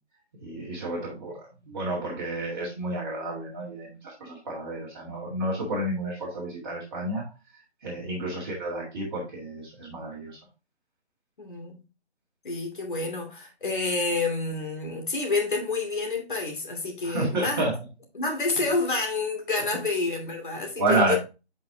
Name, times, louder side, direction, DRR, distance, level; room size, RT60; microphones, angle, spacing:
voice 1, 0.4-7.2 7.8-10.4 17.0-17.7 20.8-21.2, right 2 dB, 20° right, 1.9 m, -30 dB
voice 2, 8.0-8.4 11.4-11.8 12.4-17.6 18.1-21.2, left 3 dB, 45° left, 2.6 m, -29 dB
7.5 x 5.5 x 2.8 m
figure-of-eight pair, 165°, 34 cm